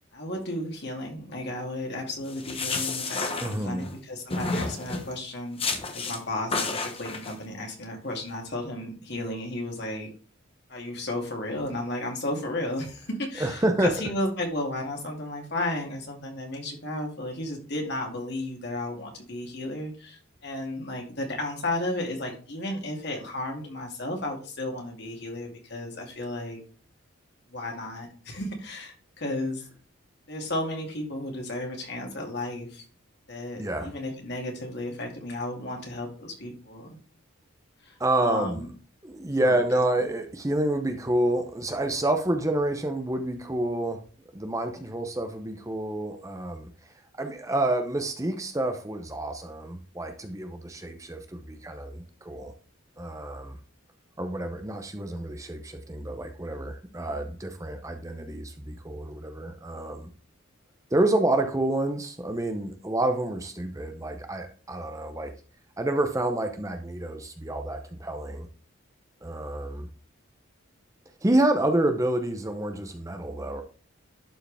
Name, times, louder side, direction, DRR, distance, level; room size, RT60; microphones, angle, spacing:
voice 1, 0.1-5.6 5.9-10.1 10.7-26.6 27.5-29.6 30.3-32.8 33.3-37.0 37.8-38.7 39.4-39.8, left 1 dB, 55° left, 1 dB, 2.4 m, -33 dB
sound 1, 2.3-3.9 4.3-5.1 5.6-6.2 6.5-7.3, left 3 dB, 25° left, 1.1 m, -30 dB
voice 2, 3.4-3.9 13.4-13.9 33.6-33.9 38.0-38.6 39.0-44.0 44.3-46.7 47.2-52.5 53.0-53.6 54.2-60.1 60.9-65.3 65.8-68.5 69.2-69.9 71.2-73.6, right 1 dB, 15° right, 6 dB, 0.7 m, -28 dB
11.5 x 4.7 x 3.4 m, 0.39 s
head